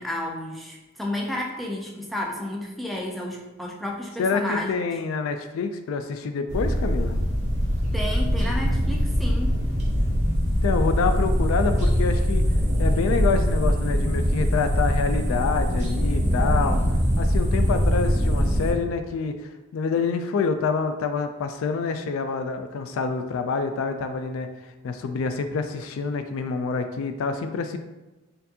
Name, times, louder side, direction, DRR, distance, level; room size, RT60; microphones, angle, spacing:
voice 1, 0.0-4.7 7.9-9.6, left 1 dB, ahead, -2 dB, 0.4 m, -31 dB
voice 2, 4.2-7.2 10.6-12.4 12.8-16.8 17.2-24.5 24.8-27.8, left 4 dB, 75° left, 8 dB, 0.3 m, -27 dB
sound 1, 6.5-18.7, equal, 35° right, 0.7 m, -22 dB
4.4 x 2.6 x 2.7 m, 1.1 s
head